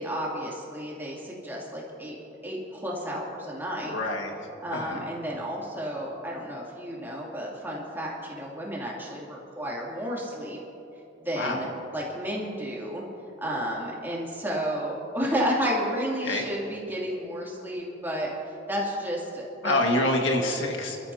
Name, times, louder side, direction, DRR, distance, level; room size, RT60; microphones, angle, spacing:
voice 1, 0.0-2.1 2.4-3.9 4.6-10.6 11.2-13.0 13.4-18.3 18.7-19.8, equal, 10° right, -5 dB, 2.7 m, -32 dB
voice 2, 3.8-4.3 4.7-5.1 11.3-11.7 16.2-16.5 19.6-21.0, left 1 dB, 80° left, 1 dB, 1.8 m, -26 dB
29.0 x 13.0 x 2.8 m, 3.0 s
head